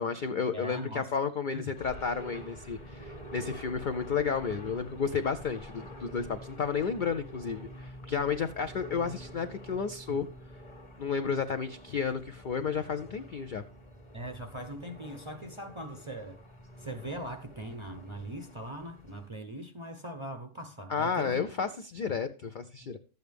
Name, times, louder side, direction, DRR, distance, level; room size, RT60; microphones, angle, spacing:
voice 1, 0.0-10.3 11.0-13.6 20.9-23.0, left 6 dB, 65° left, 0.5 m, -32 dB
voice 2, 0.5-1.1 1.7-1.8 10.1-10.2 14.1-16.4 16.8-21.7 22.8-22.9, right 1 dB, 35° right, 0.5 m, -41 dB
sound 1, 1.7-19.3, equal, 25° left, 1.2 m, -47 dB
12.0 x 7.9 x 3.4 m
omnidirectional pair, 1.4 m